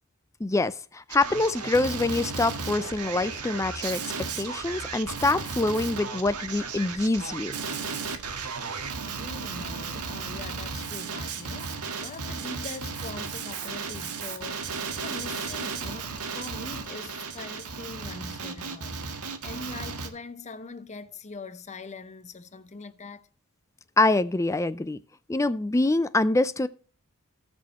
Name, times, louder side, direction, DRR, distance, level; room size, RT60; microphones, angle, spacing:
voice 1, 0.4-7.5 24.0-25.0 25.3-26.7, left 2 dB, 15° left, 0.4 m, -25 dB
Male speech man speaking, 1.1-20.1, right 5 dB, 85° right, 1.6 m, -35 dB
voice 2, 9.1-23.3, left 3 dB, 30° left, 0.8 m, -42 dB
18.5 x 6.3 x 3.0 m
head